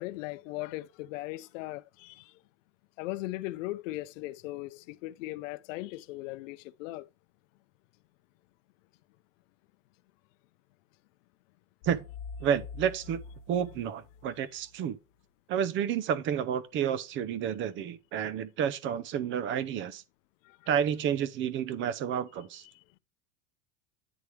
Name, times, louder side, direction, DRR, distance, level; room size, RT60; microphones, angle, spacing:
voice 1, 0.0-2.3 3.0-7.1 20.4-20.6, left 18 dB, 85° left, 0.6 m, -38 dB
sound 1, 11.8-14.7, left 4 dB, 50° left, 0.8 m, -45 dB
voice 2, 12.4-13.2 13.5-15.0 15.5-20.0 20.7-22.6, right 8 dB, 30° right, 0.6 m, -30 dB
9.9 x 3.3 x 4.5 m
supercardioid pair, 150°, 38 cm